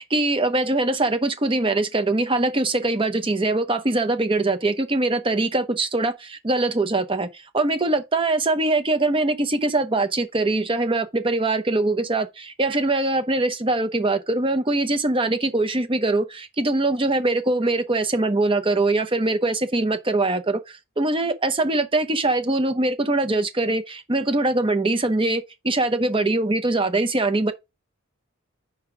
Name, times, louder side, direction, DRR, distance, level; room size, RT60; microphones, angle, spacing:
voice 1, 0.0-27.5, right 2 dB, 25° right, 0.8 m, -22 dB
5.1 x 4.8 x 4.9 m
head